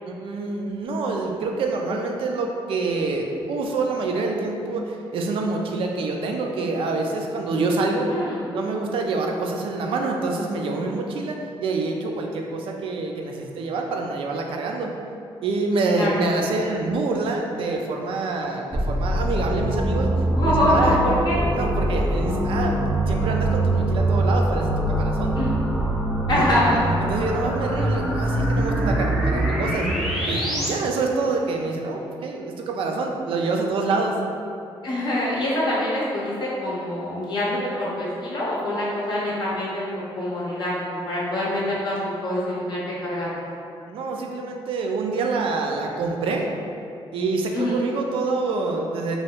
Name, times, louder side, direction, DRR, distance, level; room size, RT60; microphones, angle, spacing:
voice 1, 0.1-8.1 8.5-14.9 15.4-20.1 20.4-21.0 21.5-22.8 23.1-25.4 26.3-26.6 27.0-29.9 30.2-34.2 43.9-46.5 47.1-49.2, right 3 dB, 75° right, 1 dB, 0.4 m, -26 dB
sound 1, 18.7-30.7, right 1 dB, ahead, 0.5 m, -23 dB
voice 2, 20.3-21.4 25.4-25.5 26.3-26.9 34.8-43.4 47.5-47.8, left 1 dB, 50° left, -6 dB, 0.6 m, -25 dB
3.0 x 2.3 x 2.9 m, 2.6 s
cardioid pair, 120°, 9 cm